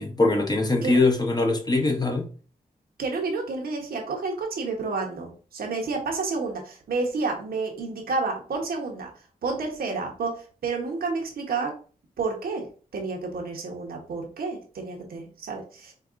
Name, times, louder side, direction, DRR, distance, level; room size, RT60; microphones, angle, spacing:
voice 1, 0.0-2.3, left 2 dB, 25° left, 0.8 m, -22 dB
voice 2, 3.0-9.1 9.4-11.7 12.2-12.7 12.9-15.9, right 4 dB, 90° right, 0.9 m, -30 dB
4.7 x 2.3 x 2.4 m
cardioid pair, 55°, 15 cm